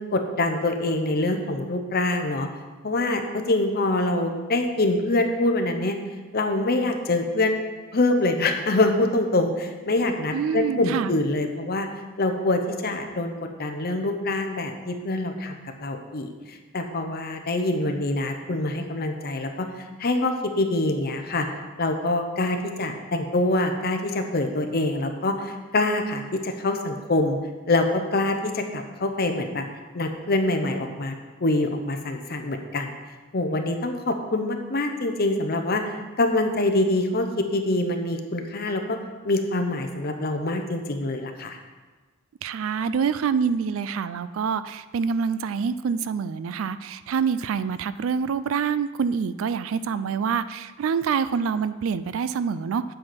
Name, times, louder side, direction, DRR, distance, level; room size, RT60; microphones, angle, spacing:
voice 1, 0.1-2.5 2.8-6.0 6.3-7.6 7.9-11.9 12.2-13.3 13.6-19.7 20.0-21.5 21.8-27.4 27.7-29.7 29.9-31.1 31.4-33.0 33.3-35.8 36.2-39.0 39.2-41.6, left 2 dB, 50° left, 6 dB, 0.8 m, -25 dB
voice 2, 10.3-11.1 42.4-52.8, right 6 dB, 70° right, 14 dB, 0.3 m, -26 dB
7.8 x 7.6 x 4.3 m, 1.3 s
head